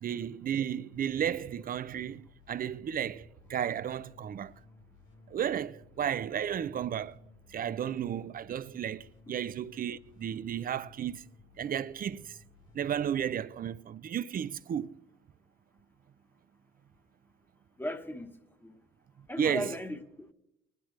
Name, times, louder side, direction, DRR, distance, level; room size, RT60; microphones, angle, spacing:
voice 1, 0.0-4.5 5.3-7.2 7.5-11.3 11.6-12.4 12.7-15.0 19.4-19.7, right 9 dB, 45° right, 0.5 m, -33 dB
sound 1, 0.9-13.2, left 3 dB, 70° left, 3.5 m, -58 dB
voice 2, 17.8-18.3 18.6-18.8 19.3-20.3, left 1 dB, 10° left, 1.2 m, -37 dB
19.5 x 10.5 x 3.2 m
cardioid pair, 90°, 20 cm